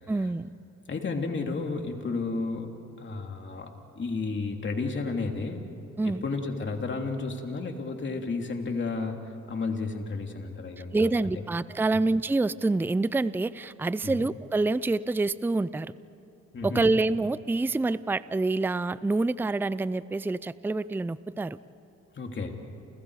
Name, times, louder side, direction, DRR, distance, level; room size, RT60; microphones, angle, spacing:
voice 1, 0.1-0.5 6.0-6.2 10.9-15.9 16.6-21.6, right 3 dB, 5° right, 17 dB, 0.5 m, -27 dB
voice 2, 0.9-5.7 6.0-11.1 14.0-14.2 16.5-16.8 22.1-22.5, left 3 dB, 40° left, 3 dB, 3.0 m, -32 dB
30.0 x 29.0 x 4.9 m, 3.0 s
cardioid pair, 90°, 30 cm